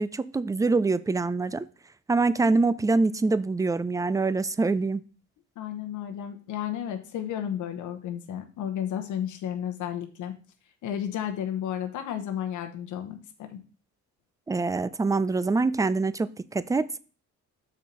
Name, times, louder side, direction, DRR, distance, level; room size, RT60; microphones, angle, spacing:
voice 1, 0.0-1.6 2.1-5.0 14.5-16.9, right 3 dB, 10° right, 16 dB, 0.4 m, -25 dB
voice 2, 5.6-10.3 10.8-13.6, left 10 dB, 80° left, 6 dB, 1.0 m, -33 dB
6.4 x 4.3 x 5.2 m, 0.38 s
cardioid pair, 90°, 30 cm